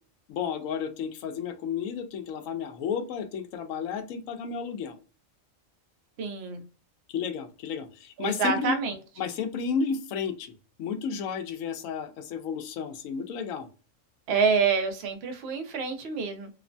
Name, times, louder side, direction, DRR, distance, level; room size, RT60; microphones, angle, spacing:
voice 1, 0.3-5.0 7.1-8.8 9.2-10.5 10.8-13.7, left 6 dB, 85° left, 7 dB, 1.0 m, -32 dB
voice 2, 6.2-6.6 8.2-8.9 14.3-16.5, right 5 dB, 60° right, 6 dB, 0.9 m, -27 dB
3.0 x 2.1 x 2.5 m, 0.36 s
omnidirectional pair, 1.4 m